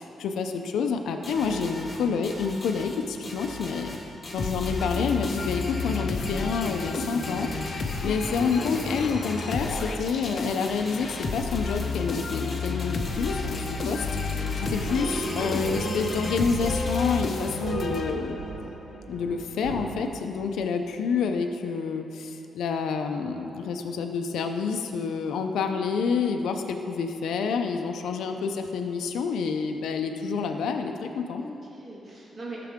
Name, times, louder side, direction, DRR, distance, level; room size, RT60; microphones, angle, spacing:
voice 1, 0.0-4.0 4.3-7.5 8.0-18.4 19.1-31.4, left 5 dB, 90° left, 5 dB, 0.6 m, -28 dB
voice 2, 1.1-1.6 8.6-8.9 14.9-15.1 31.3-32.7, right 1 dB, 45° right, -4 dB, 1.8 m, -41 dB
sound 1, 1.2-17.2, left 1 dB, 25° left, 2.0 m, -40 dB
sound 2, 4.4-18.6, left 4 dB, 50° left, 0.8 m, -31 dB
sound 3, 14.5-20.0, right 3 dB, 90° right, 1.5 m, -35 dB
13.5 x 6.7 x 3.7 m, 2.9 s
cardioid pair, 110°, 0 cm